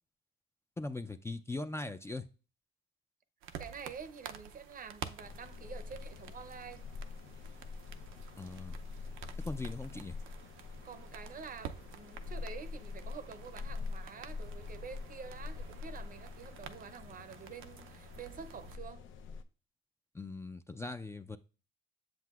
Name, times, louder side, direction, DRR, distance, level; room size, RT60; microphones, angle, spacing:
voice 1, 0.8-2.2 8.4-8.8 9.4-10.2 20.1-21.4, left 2 dB, 15° left, 0.4 m, -40 dB
sound 1, 3.4-18.8, right 8 dB, 85° right, 0.6 m, -50 dB
voice 2, 3.6-6.8 10.8-19.1, right 6 dB, 45° right, 0.7 m, -48 dB
sound 2, 5.2-19.4, left 4 dB, 75° left, 0.7 m, -45 dB
7.6 x 7.4 x 2.4 m
cardioid pair, 90°, 20 cm